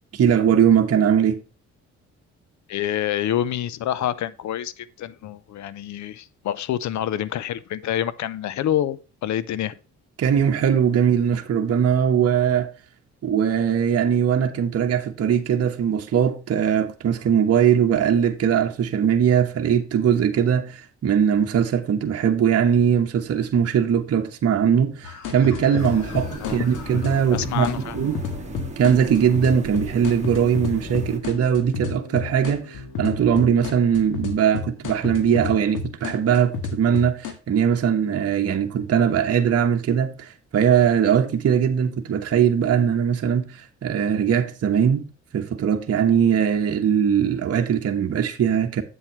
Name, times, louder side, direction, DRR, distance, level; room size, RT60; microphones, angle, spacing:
voice 1, 0.2-1.4 10.2-12.7 13.2-27.7 27.9-28.2 28.8-45.1 45.3-48.8, right 8 dB, 55° right, 1.2 m, -20 dB
voice 2, 2.7-9.8 26.4-26.7 27.3-28.0, left 11 dB, 70° left, 0.7 m, -27 dB
sound 1, 25.0-37.3, left 5 dB, 90° left, 1.7 m, -31 dB
sound 2, 25.8-31.2, right 4 dB, 20° right, 2.1 m, -37 dB
8.3 x 7.4 x 3.1 m
cardioid pair, 90°, 30 cm